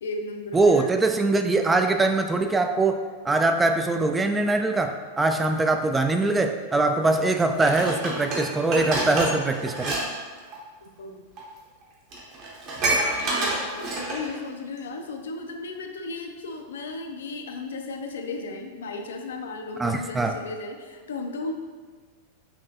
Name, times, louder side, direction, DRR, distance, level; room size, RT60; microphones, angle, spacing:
voice 1, 0.0-1.0 10.8-11.2 13.1-21.5, left 3 dB, 65° left, 5 dB, 0.4 m, -35 dB
voice 2, 0.5-10.0 19.8-20.4, right 2 dB, 10° right, 5 dB, 0.3 m, -22 dB
Dishes pots and pans, 7.6-10.0 10.3-10.6 11.4-11.5 11.8-11.9 12.1-14.3 14.8-14.9, right 2 dB, 40° right, 1.1 m, -27 dB
5.7 x 3.1 x 2.7 m, 1.4 s
figure-of-eight pair, 90°, 0 cm